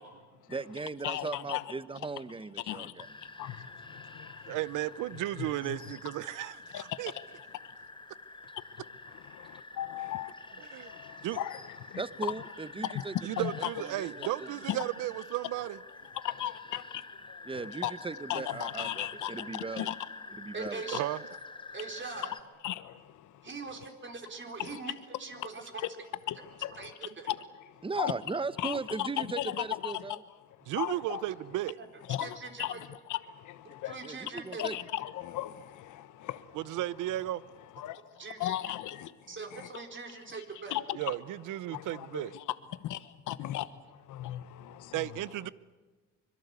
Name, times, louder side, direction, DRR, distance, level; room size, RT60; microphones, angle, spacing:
voice 1, 0.5-3.1 12.0-14.6 17.5-19.9 20.4-21.0 27.8-30.2 34.0-34.8, right 4 dB, 15° right, 0.9 m, -38 dB
voice 2, 1.0-1.7 2.6-4.6 5.4-5.8 6.7-7.2 7.6-7.7 8.5-12.0 12.8-13.1 13.4-13.7 14.7-14.8 16.1-17.9 18.3-20.0 20.9-21.0 22.1-22.3 22.6-23.5 24.6-24.9 25.4-25.5 25.8-25.9 26.3-28.1 28.6-30.2 30.5-31.3 32.1-34.3 34.6-36.8 37.8-39.8 40.5-41.1 41.6-45.5, left 13 dB, 80° left, 1.2 m, -37 dB
sound 1, 3.0-22.4, left 3 dB, 15° left, 1.3 m, -48 dB
voice 3, 4.5-7.1 10.7-10.9 11.2-11.4 13.2-15.8 20.9-21.2 30.7-31.8 36.5-37.4 41.0-42.3 44.9-45.5, right 15 dB, 85° right, 0.8 m, -34 dB
voice 4, 20.5-21.1 21.7-22.3 23.4-24.9 25.2-25.6 26.8-27.3 32.2-32.8 33.9-34.6 38.2-38.5 39.3-40.8, right 4 dB, 40° right, 4.0 m, -42 dB
25.0 x 22.5 x 8.3 m
cardioid pair, 90°, 30 cm